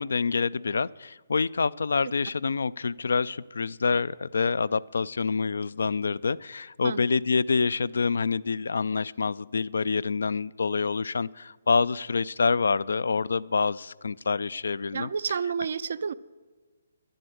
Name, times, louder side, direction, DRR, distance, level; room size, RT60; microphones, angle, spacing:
voice 1, 0.0-15.1, left 4 dB, 75° left, 0.3 m, -27 dB
voice 2, 14.9-16.1, right 6 dB, 60° right, 0.5 m, -30 dB
11.0 x 7.8 x 7.8 m
figure-of-eight pair, 145°, 0 cm